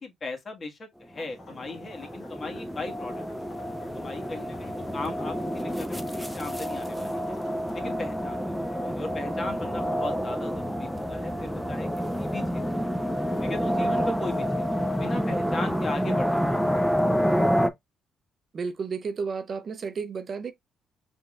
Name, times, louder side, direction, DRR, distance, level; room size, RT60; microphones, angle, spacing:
voice 1, 0.0-3.5 3.9-7.3 7.7-11.9 12.2-12.9 13.4-14.4 14.7-16.6, left 2 dB, 40° left, 1.7 m, -38 dB
sound 1, 1.2-8.1, left 1 dB, 55° left, 2.0 m, -50 dB
sound 2, 1.5-17.7, equal, ahead, 0.6 m, -28 dB
voice 2, 18.5-20.5, right 5 dB, 45° right, 0.6 m, -32 dB
4.8 x 3.7 x 2.4 m
cardioid pair, 90°, 0 cm